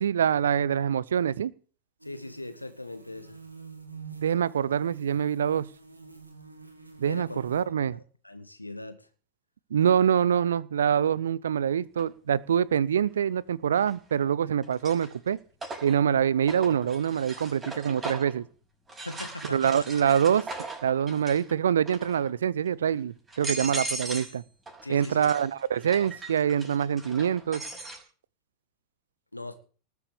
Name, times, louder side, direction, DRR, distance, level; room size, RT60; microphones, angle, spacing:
voice 1, 0.0-1.5 4.2-5.7 7.0-8.0 9.7-15.4 15.8-18.4 19.5-20.5 20.8-24.4 24.9-27.6, right 8 dB, 65° right, 24 dB, 0.6 m, -25 dB
voice 2, 2.0-3.4 7.1-7.4 7.9-8.0 8.2-9.1 19.0-19.9 24.8-25.3 29.3-29.6, left 2 dB, 85° left, 11 dB, 1.8 m, -40 dB
sound 1, 2.0-7.6, right 5 dB, 80° right, 2.8 m, -47 dB
sound 2, 12.0-12.1 13.8-14.2 14.6-18.4 18.9-21.5 21.8-22.3 22.9-23.0 23.3-24.4 24.7-28.0, right 2 dB, 15° right, 5.8 m, -39 dB
19.5 x 8.3 x 6.9 m, 0.41 s
figure-of-eight pair, 90°, 0 cm